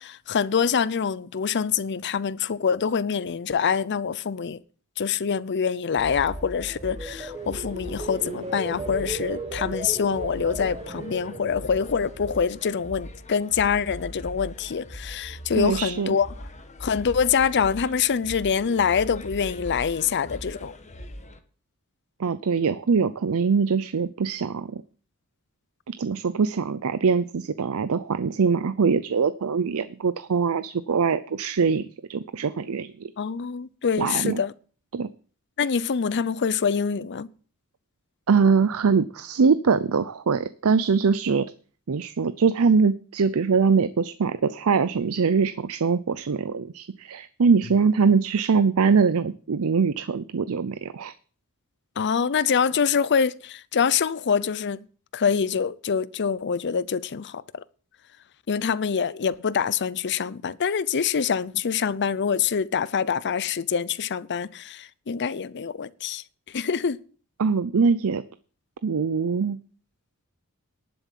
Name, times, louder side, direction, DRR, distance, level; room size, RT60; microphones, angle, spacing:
voice 1, 0.0-4.6 5.0-16.3 16.8-20.7 33.2-34.5 35.6-37.3 52.0-54.8 55.1-57.6 58.5-66.2 66.5-67.0, left 6 dB, 50° left, 0.6 m, -25 dB
sound 1, 6.0-21.4, equal, 30° left, 1.3 m, -41 dB
sound 2, 6.0-13.1 13.5-13.9, right 2 dB, 25° right, 1.5 m, -37 dB
voice 2, 15.6-16.1 22.2-24.8 25.9-33.1 34.0-34.4 34.9-35.1 38.3-41.5 41.9-51.1 67.4-68.2 68.8-69.6, right 5 dB, 70° right, 0.5 m, -23 dB
11.0 x 7.1 x 7.4 m
head